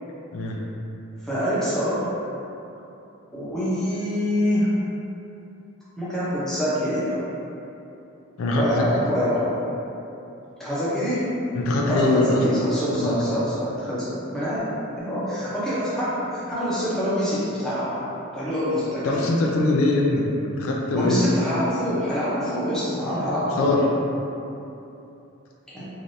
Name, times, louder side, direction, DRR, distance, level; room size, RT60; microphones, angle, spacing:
voice 1, 1.2-2.1 3.3-4.7 6.0-7.2 8.5-9.6 10.6-11.2 11.9-14.6 15.0-18.1 18.3-19.2 20.9-23.8 25.7-25.9, equal, ahead, -11 dB, 0.7 m, -25 dB
voice 2, 8.4-9.0 11.5-12.4 13.0-13.5 19.0-21.2 23.6-23.8, left 2 dB, 75° left, -1 dB, 0.3 m, -22 dB
3.2 x 2.5 x 2.7 m, 2.8 s
head